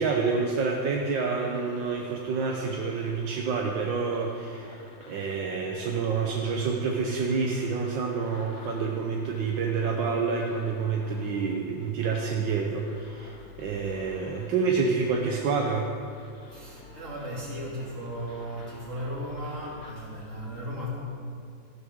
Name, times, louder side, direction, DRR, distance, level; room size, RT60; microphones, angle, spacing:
voice 1, 0.0-15.9, right 5 dB, 75° right, 1 dB, 1.5 m, -28 dB
sound 1, 0.7-19.9, left 2 dB, 50° left, 1.6 m, -51 dB
voice 2, 16.5-20.9, equal, 40° right, -5 dB, 3.1 m, -36 dB
14.5 x 12.5 x 3.7 m, 2.5 s
omnidirectional pair, 2.1 m